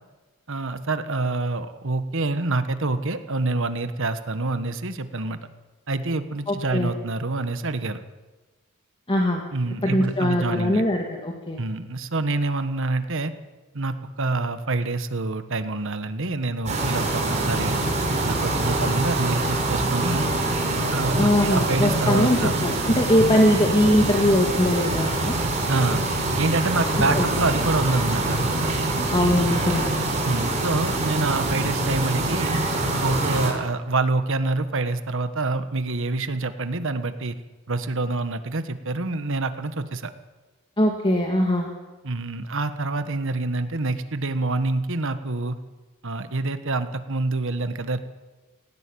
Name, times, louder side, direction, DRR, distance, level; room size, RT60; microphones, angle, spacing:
voice 1, 0.5-5.4 5.9-8.0 9.5-10.8 11.6-13.3 13.7-17.8 18.2-20.3 20.9-22.6 23.2-23.3 25.7-26.1 26.4-28.5 30.2-32.6 33.0-37.4 37.7-40.1 42.0-45.6 46.0-48.0, right 2 dB, 60° right, 10 dB, 1.4 m, -26 dB
voice 2, 6.5-6.9 9.1-9.4 9.8-11.6 21.2-25.4 27.2-27.3 29.1-29.8 40.8-41.7, left 1 dB, 25° left, 2 dB, 1.8 m, -21 dB
sound 1, 16.7-33.5, right 2 dB, 30° right, 5.1 m, -25 dB
18.5 x 17.5 x 8.6 m, 1.2 s
head